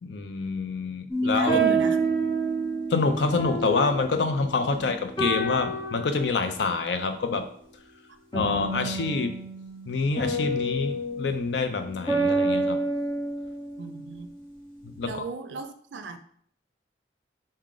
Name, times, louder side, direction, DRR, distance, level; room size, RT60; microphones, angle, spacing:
voice 1, 0.0-1.6 2.9-7.5 8.3-9.4 9.9-12.8 14.8-15.2, left 4 dB, 75° left, 8 dB, 0.5 m, -27 dB
sound 1, 1.1-4.8 5.2-6.6 8.3-14.1, right 2 dB, 25° left, 1.1 m, -28 dB
voice 2, 1.3-2.0 4.7-4.8 13.8-14.3 15.0-16.2, right 4 dB, 80° right, 9 dB, 0.4 m, -34 dB
4.7 x 2.2 x 3.7 m, 0.62 s
head